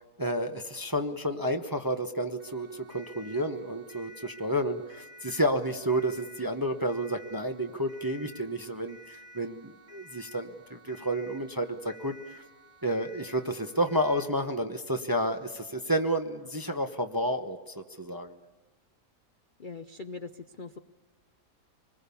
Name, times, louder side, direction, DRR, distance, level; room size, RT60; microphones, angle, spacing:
voice 1, 0.0-12.4 12.8-18.4, equal, 15° right, 5 dB, 0.8 m, -31 dB
Siren, 2.4-14.4, equal, 60° right, 3.2 m, -53 dB
voice 2, 19.6-20.8, left 4 dB, 45° left, 8 dB, 0.6 m, -41 dB
26.0 x 20.5 x 7.0 m, 1.4 s
omnidirectional pair, 1.7 m